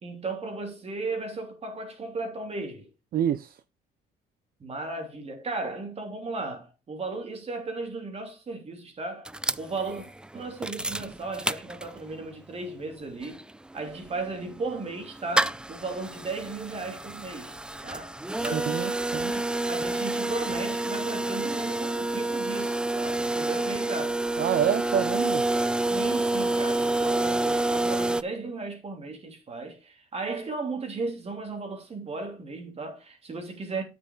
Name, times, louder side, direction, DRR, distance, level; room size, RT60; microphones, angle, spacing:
voice 1, 0.0-2.9 4.6-9.3 9.6-10.0 10.3-13.4 13.7-17.5 17.8-18.9 19.3-24.2 24.5-24.8 25.9-33.8, right 3 dB, 35° right, 3.0 m, -35 dB
voice 2, 3.1-3.6 18.4-19.3 24.4-25.4, right 10 dB, 60° right, 0.5 m, -27 dB
sound 1, 9.2-12.2 12.6-12.7 12.9-28.2, right 2 dB, 5° right, 0.3 m, -28 dB
9.0 x 6.2 x 3.7 m
cardioid pair, 100°, 17 cm